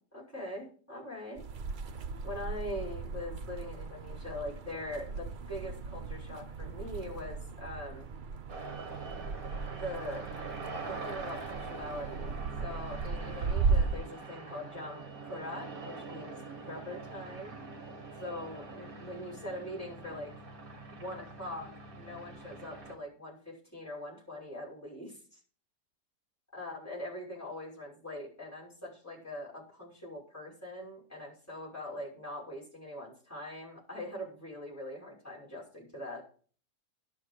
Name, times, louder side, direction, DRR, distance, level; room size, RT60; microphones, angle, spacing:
voice 1, 0.1-1.4 2.2-8.1 9.7-10.3 10.8-17.5 18.2-20.3 21.0-25.4 26.5-36.2, left 1 dB, 10° left, -4 dB, 6.1 m, -42 dB
sound 1, 1.4-14.0, right 4 dB, 85° right, 0.4 m, -36 dB
sound 2, 8.5-22.9, right 4 dB, 60° right, 2.3 m, -44 dB
11.5 x 9.5 x 4.9 m, 0.43 s
omnidirectional pair, 1.8 m